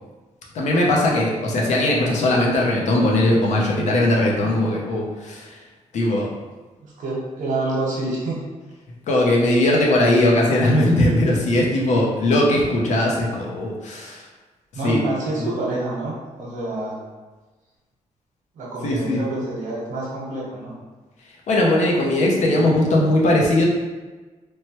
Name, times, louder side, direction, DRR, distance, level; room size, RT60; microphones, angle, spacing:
voice 1, 0.5-5.5 5.9-6.3 9.1-14.2 14.8-15.0 18.8-19.2 21.5-23.7, left 1 dB, 70° left, -2 dB, 0.6 m, -19 dB
voice 2, 4.4-4.7 6.8-8.5 14.7-17.0 18.6-20.7 22.5-22.7, right 2 dB, 90° right, -4 dB, 0.9 m, -28 dB
3.1 x 2.1 x 2.9 m, 1.3 s
wide cardioid pair, 155°, 13 cm